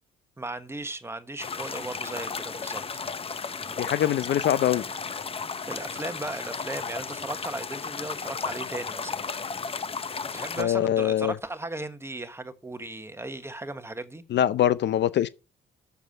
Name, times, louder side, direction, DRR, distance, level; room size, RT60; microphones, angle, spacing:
voice 1, 0.4-3.0 5.7-9.3 10.3-14.2, right 2 dB, 10° right, 1.2 m, -36 dB
sound 1, 1.4-10.6, left 5 dB, 30° left, 0.7 m, -34 dB
voice 2, 3.8-4.8 10.6-11.3 14.3-15.3, left 11 dB, 65° left, 0.6 m, -23 dB
7.0 x 6.6 x 7.7 m
cardioid pair, 90°, 20 cm